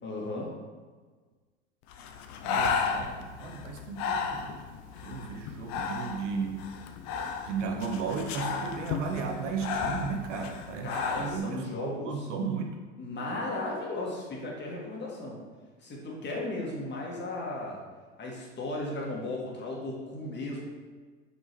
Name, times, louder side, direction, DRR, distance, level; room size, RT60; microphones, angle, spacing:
voice 1, 0.0-0.5 10.8-12.3 13.0-15.4 15.8-17.8 18.2-20.6, left 2 dB, 30° left, -3 dB, 1.8 m, -35 dB
Breathing, 1.9-11.4, left 5 dB, 50° left, 0.6 m, -34 dB
voice 2, 2.4-4.5 5.0-6.6 7.5-10.9 11.2-12.8, right 5 dB, 75° right, 3 dB, 0.9 m, -34 dB
6.0 x 5.3 x 3.1 m, 1.4 s
hypercardioid pair, 85°, 37 cm